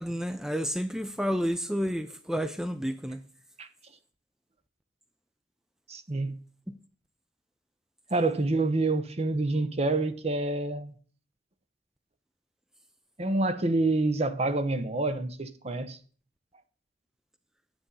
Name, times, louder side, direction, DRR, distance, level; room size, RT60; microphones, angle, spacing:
voice 1, 0.0-3.2 6.7-6.8, equal, 5° right, 0.4 m, -30 dB
voice 2, 5.9-6.4 8.1-10.9 13.2-16.0, right 2 dB, 35° right, 0.8 m, -27 dB
8.9 x 8.7 x 5.5 m
head